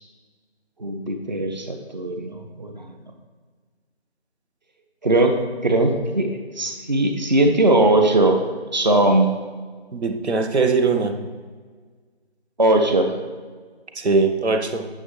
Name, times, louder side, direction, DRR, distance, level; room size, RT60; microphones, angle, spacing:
voice 1, 0.8-2.8 5.0-5.4 5.6-8.4 8.7-9.3 12.6-13.1, right 2 dB, 45° right, 5 dB, 0.8 m, -19 dB
voice 2, 9.9-11.2 13.9-14.8, right 4 dB, 85° right, 6 dB, 1.0 m, -21 dB
8.8 x 7.2 x 3.2 m, 1.5 s
figure-of-eight pair, 175°, 32 cm